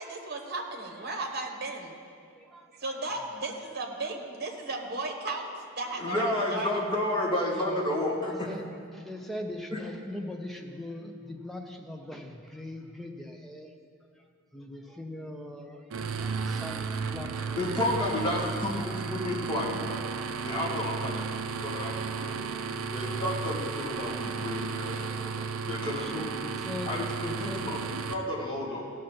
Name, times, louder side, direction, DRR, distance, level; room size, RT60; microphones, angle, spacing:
voice 1, 0.0-2.0 2.7-6.2 6.5-6.8, right 2 dB, 45° right, 2 dB, 1.1 m, -35 dB
voice 2, 2.3-2.7 3.2-3.3 7.5-7.8 8.2-8.6 8.9-13.7 14.1-14.2 14.5-15.9 16.2-17.8 18.4-18.5 20.2-20.7 22.5-23.1 25.7-26.9 27.2-27.7, left 1 dB, ahead, 2 dB, 0.6 m, -42 dB
voice 3, 6.0-8.6 9.7-9.8 17.6-20.0 20.4-21.2 21.6-22.4 22.9-25.3 25.7-26.3 26.9-28.8, left 1 dB, 20° left, -6 dB, 1.9 m, -31 dB
sound 1, 15.9-28.1, right 5 dB, 65° right, 0.5 m, -34 dB
15.5 x 6.4 x 4.4 m, 2.3 s
head